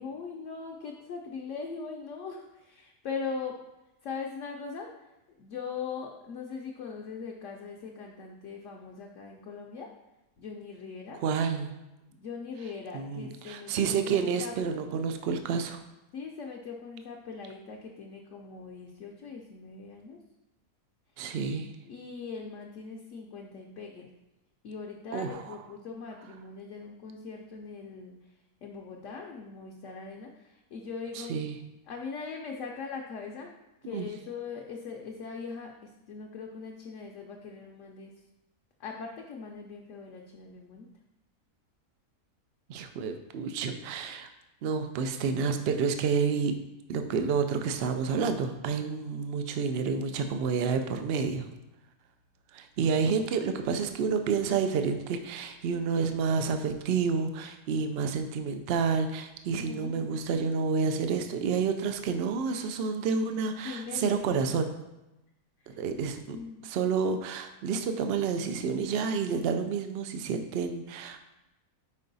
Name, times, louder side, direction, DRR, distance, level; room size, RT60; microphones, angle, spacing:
voice 1, 0.0-3.6 4.0-5.1 5.4-9.9 10.4-11.2 12.1-14.6 16.1-20.2 21.9-24.1 24.6-28.3 28.6-31.3 31.9-33.5 33.8-38.1 38.8-40.9 53.5-54.0 59.6-60.1 63.6-64.3 65.6-65.8 66.3-66.6, left 5 dB, 65° left, 0 dB, 0.9 m, -40 dB
voice 2, 11.2-11.7 12.9-15.8 21.2-21.7 25.1-25.4 31.2-31.5 33.8-34.1 42.7-44.3 44.6-46.6 46.9-51.5 52.5-64.7 65.7-71.2, right 5 dB, 90° right, 7 dB, 0.5 m, -29 dB
5.3 x 4.7 x 3.9 m, 0.96 s
omnidirectional pair, 1.6 m